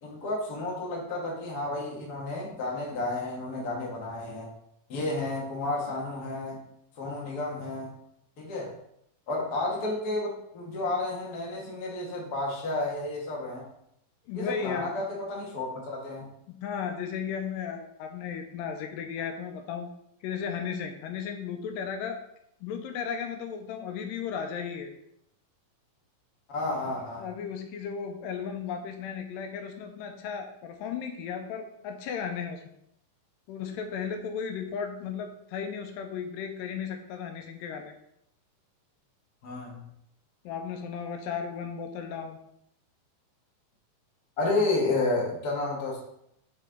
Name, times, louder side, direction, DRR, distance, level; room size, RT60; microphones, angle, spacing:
voice 1, 0.0-4.5 4.9-6.6 7.0-7.9 8.4-8.7 9.3-13.6 14.3-16.3 26.5-27.2 39.4-39.9 44.4-46.0, left 2 dB, 55° left, -2 dB, 1.0 m, -31 dB
voice 2, 14.3-14.9 16.5-19.9 20.2-22.2 22.6-24.9 26.8-26.9 27.2-32.6 33.5-37.9 40.5-42.4, left 7 dB, 85° left, 5 dB, 2.3 m, -35 dB
5.7 x 4.5 x 3.8 m, 0.76 s
omnidirectional pair, 4.0 m